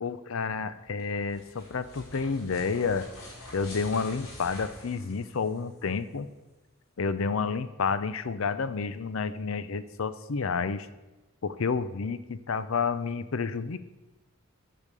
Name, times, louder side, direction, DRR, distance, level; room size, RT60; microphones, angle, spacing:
voice 1, 0.0-3.1 3.5-6.3 7.0-10.9 11.4-13.8, left 5 dB, 70° left, 14 dB, 0.6 m, -30 dB
sound 1, 0.8-5.8, left 1 dB, 90° left, 3.3 m, -47 dB
8.7 x 6.5 x 6.7 m, 1.1 s
head